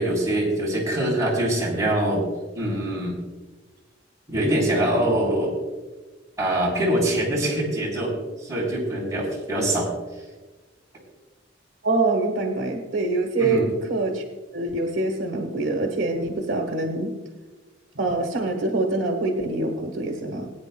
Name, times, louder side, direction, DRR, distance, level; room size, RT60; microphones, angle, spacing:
voice 1, 0.0-2.2 2.6-3.2 4.3-5.5 6.4-8.1 8.4-9.9 13.4-13.7, right 1 dB, 15° right, -6 dB, 3.5 m, -23 dB
voice 2, 11.8-13.6 13.9-14.2 14.5-17.2 17.9-20.5, right 2 dB, 75° right, 1 dB, 1.3 m, -25 dB
21.0 x 9.4 x 2.2 m, 1.2 s
head